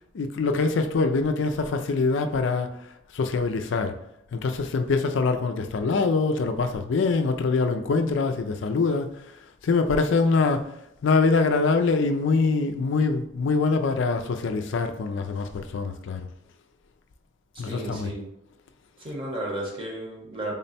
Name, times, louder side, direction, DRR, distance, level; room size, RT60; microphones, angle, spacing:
voice 1, 0.1-2.7 3.1-3.9 4.3-9.1 9.6-10.7 11.0-16.2 17.6-18.1, left 4 dB, 60° left, 7 dB, 0.4 m, -24 dB
voice 2, 17.6-18.3 19.0-20.5, right 1 dB, 25° right, -2 dB, 0.9 m, -33 dB
3.6 x 2.1 x 4.1 m, 0.78 s
head